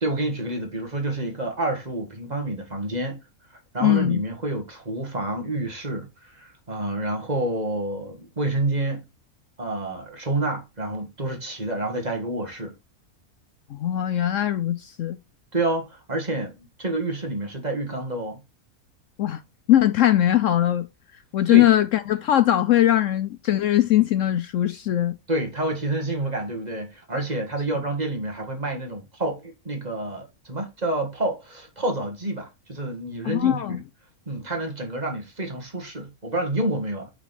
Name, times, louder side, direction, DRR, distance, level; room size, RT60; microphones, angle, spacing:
voice 1, 0.0-3.2 3.7-9.0 9.6-12.8 15.5-18.4 21.5-21.7 25.3-33.8 34.3-37.1, right 2 dB, 30° right, 1.8 m, -28 dB
voice 2, 3.8-4.2 13.7-15.2 19.2-19.4 19.7-20.9 21.3-25.2 33.2-33.8, left 12 dB, 70° left, 0.8 m, -20 dB
5.8 x 5.8 x 4.1 m
omnidirectional pair, 1.5 m